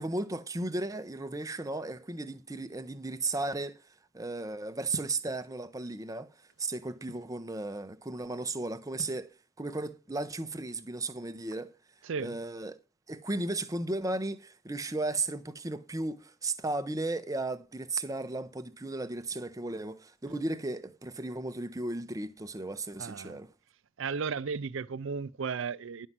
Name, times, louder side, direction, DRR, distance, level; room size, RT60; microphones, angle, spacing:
voice 1, 0.0-11.8 12.2-12.8 13.1-23.5, right 2 dB, 15° right, 0.7 m, -35 dB
sound 1, 4.9-5.3 6.1-7.3 9.0-9.3, left 1 dB, 65° left, 1.2 m, -45 dB
voice 2, 23.0-23.4 24.0-26.1, right 5 dB, 70° right, 0.5 m, -34 dB
11.0 x 5.5 x 7.3 m
head